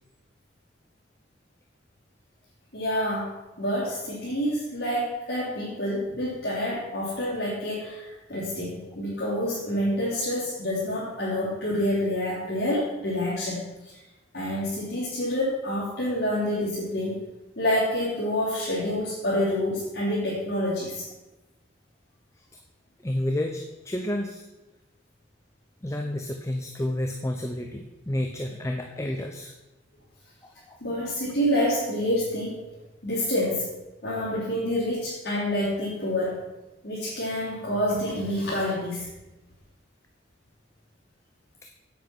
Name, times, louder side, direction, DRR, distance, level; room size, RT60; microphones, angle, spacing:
voice 1, 2.7-3.3 3.6-14.0 14.3-17.1 17.5-21.1 30.8-32.6 33.0-33.7 34.0-36.4 36.8-39.1, left 1 dB, 55° left, -10 dB, 3.4 m, -27 dB
voice 2, 23.0-24.5 25.8-29.5 30.7-30.8 41.6-41.7, left 1 dB, 15° left, 4 dB, 0.6 m, -30 dB
8.5 x 8.2 x 6.1 m, 1.1 s
head